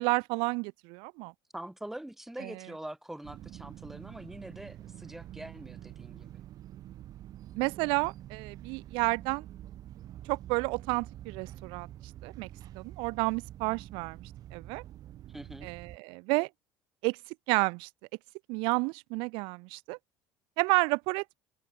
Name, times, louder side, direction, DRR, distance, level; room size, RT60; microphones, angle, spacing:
voice 1, 0.0-1.3 2.4-2.5 7.6-9.4 10.3-11.9 12.2-12.5 12.7-14.2 14.5-14.8 15.6-16.5 17.0-17.2 17.5-17.9 18.5-20.0 20.6-21.3, right 29 dB, 75° right, 3.4 m, -30 dB
voice 2, 1.5-6.3 15.3-15.7, right 1 dB, 5° right, 4.4 m, -44 dB
sound 1, 3.2-16.0, right 13 dB, 45° right, 6.6 m, -47 dB
cardioid pair, 150°, 9 cm